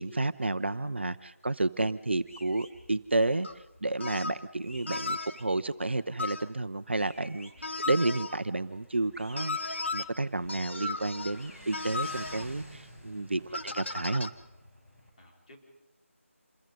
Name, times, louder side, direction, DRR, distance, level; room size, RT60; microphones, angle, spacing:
voice 1, 0.0-3.5 3.8-14.3, right 2 dB, 50° right, 12 dB, 0.8 m, -31 dB
Motorcycle, 2.2-15.1, equal, 10° left, 4.4 m, -53 dB
sound 1, 2.3-2.7 4.6-5.5 6.9-7.5 9.1-9.9 11.3-11.8, left 1 dB, 70° left, 4.2 m, -52 dB
sound 2, 3.4-3.5 4.0-4.4 4.9-5.4 6.2-6.5 7.6-8.4 9.4-10.0 10.5-11.4 11.7-12.5 13.5-14.3, left 3 dB, 55° left, 1.1 m, -35 dB
voice 2, 13.4-13.8 15.2-15.6, left 1 dB, 35° left, -2 dB, 5.0 m, -56 dB
27.5 x 21.5 x 5.4 m, 0.87 s
figure-of-eight pair, 160°, 8 cm